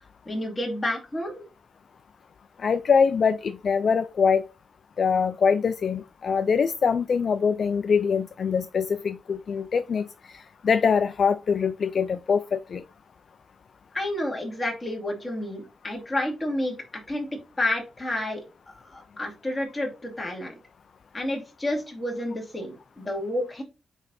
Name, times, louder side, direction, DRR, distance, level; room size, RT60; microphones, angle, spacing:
voice 1, 0.3-1.4 13.9-17.3 17.6-18.4 18.7-20.5 21.1-23.6, left 1 dB, 20° left, 2.6 m, -30 dB
voice 2, 2.6-4.4 5.0-10.0 10.3-12.8, left 6 dB, 55° left, 0.4 m, -23 dB
8.9 x 3.4 x 4.2 m
wide cardioid pair, 120°, 0 cm